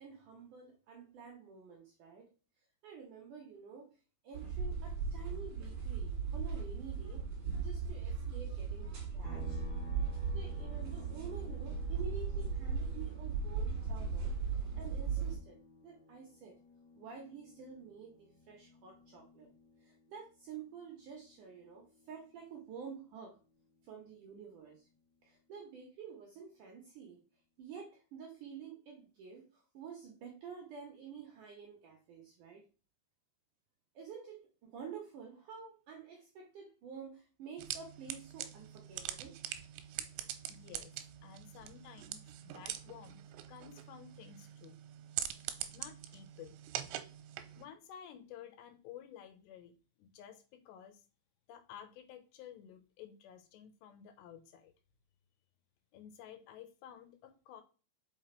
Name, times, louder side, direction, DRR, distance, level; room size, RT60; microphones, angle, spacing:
voice 1, 0.0-2.3 2.8-3.9 4.2-7.3 7.5-9.6 10.3-15.6 15.8-16.6 17.0-19.5 19.8-23.4 23.8-24.9 25.2-27.2 27.6-32.6 33.9-39.4, right 6 dB, 70° right, 1 dB, 2.0 m, -50 dB
sound 1, 4.3-15.4, right 5 dB, 45° right, 2.2 m, -37 dB
sound 2, 9.2-22.8 23.1-25.3, left 3 dB, 5° right, 1.5 m, -58 dB
sound 3, 37.6-47.7, right 12 dB, 90° right, 3.0 m, -44 dB
voice 2, 40.5-40.9 41.2-43.2 43.5-44.8 45.7-46.6 47.6-49.7 50.0-51.0 51.5-54.7 55.9-57.6, left 9 dB, 80° left, 9 dB, 2.9 m, -53 dB
6.0 x 5.3 x 4.4 m, 0.35 s
omnidirectional pair, 5.1 m